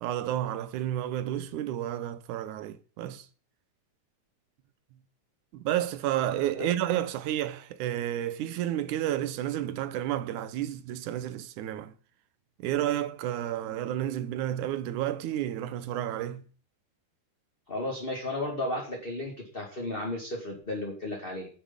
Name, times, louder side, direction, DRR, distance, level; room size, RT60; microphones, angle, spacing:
voice 1, 0.0-3.3 5.5-11.9 12.6-16.4, right 12 dB, 80° right, 2.2 m, -31 dB
voice 2, 17.7-21.5, left 1 dB, 20° left, 2.1 m, -34 dB
9.4 x 7.1 x 8.8 m
omnidirectional pair, 3.6 m